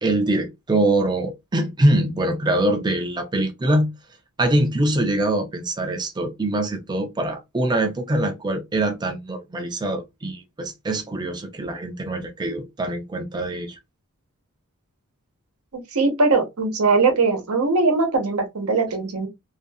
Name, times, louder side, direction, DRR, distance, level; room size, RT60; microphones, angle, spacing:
voice 1, 0.0-3.9 4.4-13.8, right 1 dB, 20° right, 0.4 m, -23 dB
voice 2, 15.7-19.3, right 3 dB, 90° right, 0.8 m, -20 dB
2.5 x 2.3 x 2.6 m
head